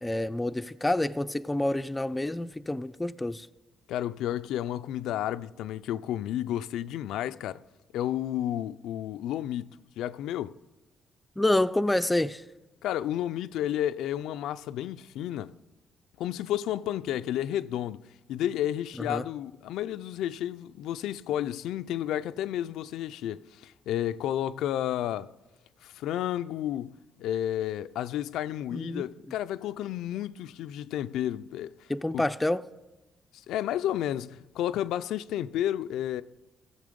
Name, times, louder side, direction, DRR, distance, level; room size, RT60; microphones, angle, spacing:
voice 1, 0.0-3.5 11.4-12.4 19.1-19.2 28.7-29.1 31.9-32.7, left 1 dB, 10° left, 0.4 m, -28 dB
voice 2, 3.9-7.6 7.9-10.5 12.8-15.5 16.2-18.0 18.3-25.3 25.8-26.9 27.2-31.9 32.1-32.3 33.5-36.2, left 11 dB, 85° left, 0.3 m, -31 dB
16.0 x 6.6 x 5.1 m
cardioid pair, 90°, 0 cm